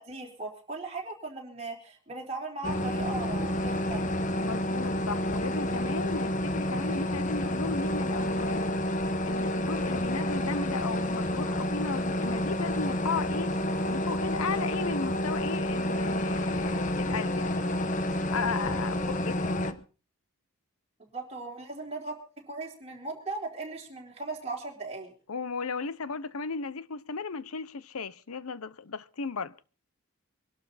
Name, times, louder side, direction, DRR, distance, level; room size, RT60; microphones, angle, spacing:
voice 1, 0.0-4.2 21.0-22.2 22.5-25.1, right 3 dB, 30° right, 4.1 m, -38 dB
sound 1, 2.6-19.7, left 1 dB, 35° left, 1.1 m, -29 dB
voice 2, 4.4-8.8 9.2-13.5 13.9-18.0 18.3-19.8 25.3-29.5, left 4 dB, 85° left, 0.8 m, -35 dB
23.5 x 12.0 x 4.1 m
head